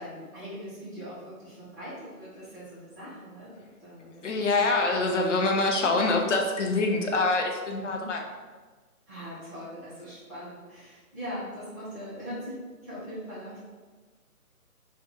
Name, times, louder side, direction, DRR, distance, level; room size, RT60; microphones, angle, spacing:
voice 1, 0.0-4.3 7.8-8.1 9.1-12.5 12.8-13.6, equal, 15° right, -14 dB, 0.8 m, -41 dB
voice 2, 4.2-8.2, left 3 dB, 55° left, 1 dB, 0.6 m, -25 dB
2.6 x 2.6 x 3.7 m, 1.4 s
hypercardioid pair, 165°, 45 cm